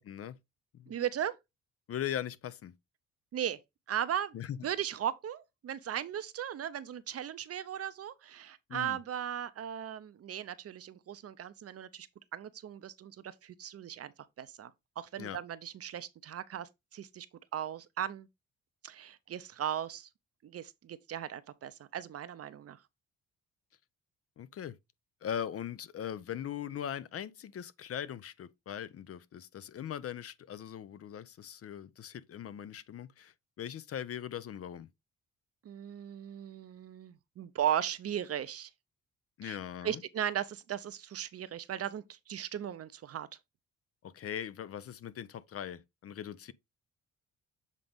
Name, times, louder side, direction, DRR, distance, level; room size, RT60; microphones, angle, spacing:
voice 1, 0.1-0.4 0.7-0.9 1.9-2.7 4.3-4.6 8.7-9.0 15.2-15.4 24.4-24.8 25.2-34.9 39.4-40.0 44.0-46.5, left 9 dB, 50° left, 0.6 m, -40 dB
voice 2, 0.9-1.4 3.3-3.6 3.9-4.4 4.6-12.1 12.3-14.1 14.4-14.7 15.0-17.3 17.5-18.3 18.8-20.1 20.4-22.8 35.6-38.7 39.4-43.3, right 10 dB, 50° right, 0.7 m, -37 dB
7.5 x 3.8 x 3.5 m
cardioid pair, 90°, 30 cm